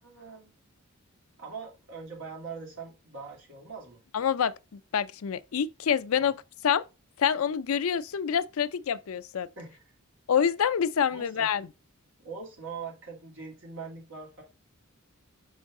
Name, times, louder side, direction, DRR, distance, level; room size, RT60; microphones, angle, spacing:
voice 1, 0.0-0.6 1.4-4.0 6.2-6.3 9.6-9.9 11.1-11.5 12.2-14.4, right 5 dB, 60° right, 3.1 m, -42 dB
voice 2, 4.1-6.8 7.2-9.5 10.3-11.7, left 8 dB, 75° left, 0.4 m, -27 dB
6.4 x 5.4 x 3.6 m
head